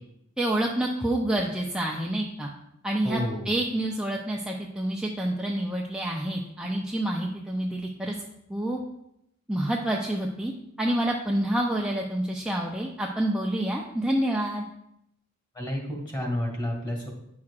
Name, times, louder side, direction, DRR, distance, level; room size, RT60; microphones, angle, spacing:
voice 1, 0.4-2.5 2.8-8.1 8.5-8.8 9.5-10.5 10.8-14.6, right 1 dB, 5° right, -2 dB, 0.5 m, -28 dB
voice 2, 3.0-3.5 15.5-17.1, left 1 dB, 25° left, 0 dB, 2.2 m, -30 dB
9.4 x 6.1 x 2.4 m, 0.79 s
head